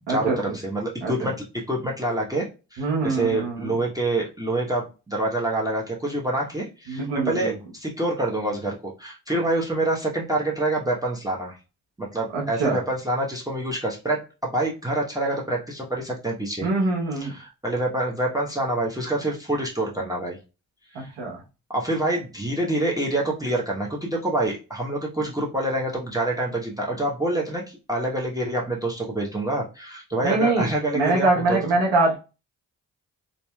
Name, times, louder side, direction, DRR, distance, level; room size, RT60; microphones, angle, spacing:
voice 1, 0.1-11.6 12.0-16.7 17.1-20.4 20.9-21.1 21.7-31.6, right 1 dB, 10° right, -2 dB, 0.9 m, -26 dB
voice 2, 2.8-3.7 6.9-7.5 12.3-12.8 16.6-17.3 20.9-21.4 30.2-30.7 30.9-32.2, right 3 dB, 80° right, 0 dB, 1.1 m, -23 dB
2.9 x 2.6 x 2.2 m, 0.30 s
hypercardioid pair, 40°, 43 cm